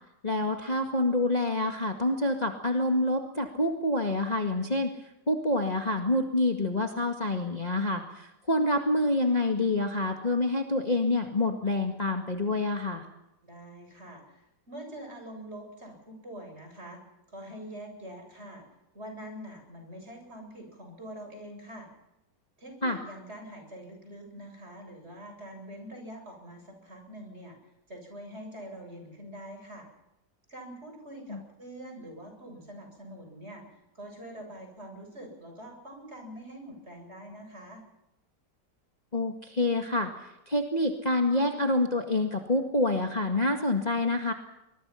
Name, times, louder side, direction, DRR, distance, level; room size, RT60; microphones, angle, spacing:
voice 1, 0.2-13.0 22.8-23.0 31.3-31.4 39.1-44.3, left 2 dB, 25° left, 3 dB, 2.0 m, -27 dB
voice 2, 13.4-17.0 17.3-18.7 18.9-21.9 22.6-27.6 27.9-29.9 30.5-33.7 33.9-37.8, equal, 35° right, 4 dB, 7.7 m, -44 dB
24.5 x 22.5 x 5.8 m, 0.90 s
omnidirectional pair, 1.9 m